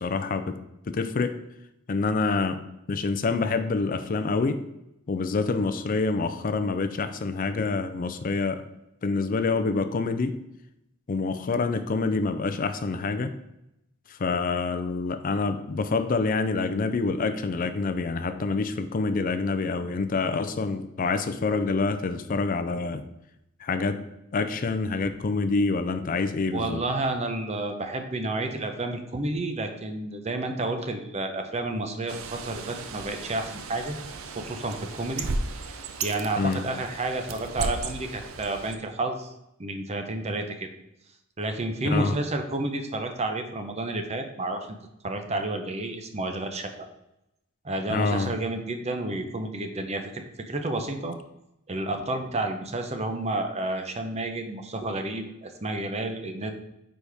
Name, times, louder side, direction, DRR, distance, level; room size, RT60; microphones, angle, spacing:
voice 1, 0.0-0.6 0.9-1.4 1.9-2.6 2.9-4.6 5.1-8.6 9.0-10.4 11.1-13.3 14.1-23.1 23.6-24.0 24.3-26.8 36.4-36.6 41.8-42.2 47.9-48.3, left 4 dB, 40° left, 10 dB, 0.4 m, -27 dB
voice 2, 26.5-34.0 34.3-35.3 35.5-39.3 39.6-40.7 41.4-44.7 45.0-46.9 47.6-51.1 51.7-56.5, right 2 dB, 30° right, 6 dB, 0.7 m, -30 dB
Bird, 32.1-38.8, right 3 dB, 85° right, 0.6 m, -35 dB
9.4 x 4.1 x 3.4 m, 0.84 s
head